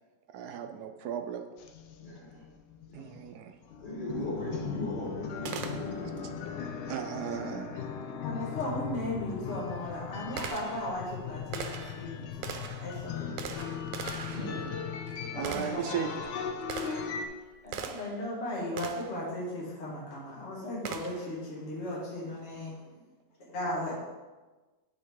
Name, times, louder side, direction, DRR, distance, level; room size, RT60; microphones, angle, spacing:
voice 1, 0.3-1.4 2.9-3.5 6.0-6.1 6.9-7.8 14.4-14.9 15.3-16.2, right 8 dB, 70° right, 6 dB, 1.0 m, -36 dB
sound 1, 1.6-3.3 3.7-17.3, left 7 dB, 75° left, 1.3 m, -38 dB
voice 2, 2.0-2.4 3.8-7.2 15.5-16.2 22.8-23.0, left 1 dB, 60° left, -7 dB, 2.6 m, -39 dB
Gunshot gunfire, 5.4-6.3 8.6-8.7 9.4-18.3 18.8-19.2 20.8-21.4, right 6 dB, 90° right, 1.3 m, -41 dB
voice 3, 8.2-13.6 14.3-14.5 15.3-16.0 17.6-22.7 23.5-24.0, left 1 dB, 40° left, -6 dB, 1.7 m, -36 dB
9.1 x 4.5 x 3.7 m, 1.2 s
omnidirectional pair, 1.9 m